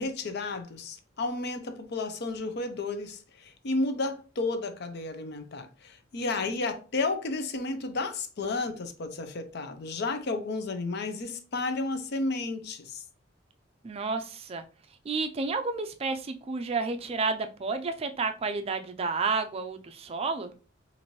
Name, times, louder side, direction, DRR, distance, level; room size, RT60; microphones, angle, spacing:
voice 1, 0.0-13.0, left 3 dB, 60° left, 0.5 m, -32 dB
voice 2, 13.8-14.6 15.0-20.5, right 4 dB, 30° right, 0.4 m, -31 dB
4.2 x 2.6 x 3.0 m
head